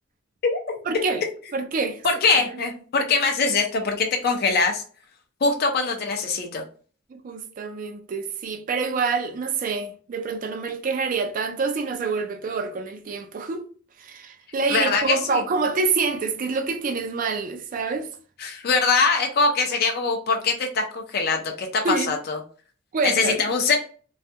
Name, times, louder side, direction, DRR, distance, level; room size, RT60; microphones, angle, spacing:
voice 1, 0.9-1.2 1.5-2.1 2.5-2.6 7.1-13.7 14.0-18.1 21.8-22.1 22.9-23.4, right 4 dB, 45° right, 0.4 m, -27 dB
voice 2, 2.0-4.8 5.4-6.6 14.7-15.4 18.4-22.4 23.0-23.8, left 4 dB, 50° left, 0.4 m, -22 dB
2.3 x 2.2 x 2.6 m
head